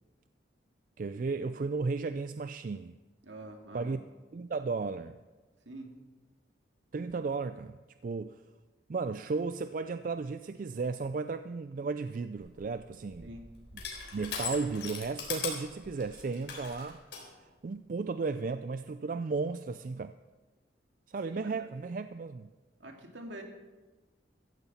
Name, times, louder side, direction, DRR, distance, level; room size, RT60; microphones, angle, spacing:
voice 1, 1.0-2.9 3.7-4.0 4.3-5.2 6.9-7.8 8.0-8.4 8.9-13.3 14.1-17.0 17.6-20.1 21.1-22.5, right 4 dB, 45° right, 11 dB, 0.3 m, -34 dB
voice 2, 3.2-4.0 5.7-5.9 13.2-13.5 21.2-21.7 22.8-23.4, right 1 dB, 75° right, 2 dB, 2.2 m, -46 dB
Crushing, 12.4-17.3, left 6 dB, 65° left, 3.7 m, -40 dB
16.0 x 14.0 x 4.3 m, 1.2 s
head